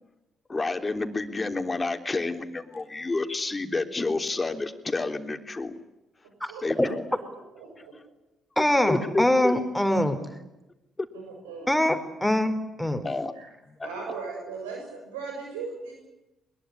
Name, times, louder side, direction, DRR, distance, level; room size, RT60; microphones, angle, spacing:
voice 1, 0.5-5.7 6.6-7.1 8.9-9.5 11.0-11.1 13.0-13.3 13.8-13.9, left 3 dB, 25° left, 7 dB, 3.5 m, -29 dB
voice 2, 6.2-7.2 7.6-8.0 11.1-11.7 13.3-13.5 13.8-16.0, right 4 dB, 90° right, 0 dB, 7.0 m, -38 dB
voice 3, 8.6-10.2 11.7-12.5 12.8-13.0, left 1 dB, 5° left, 9 dB, 4.5 m, -23 dB
22.5 x 22.0 x 9.9 m, 0.96 s
hypercardioid pair, 50°, 0 cm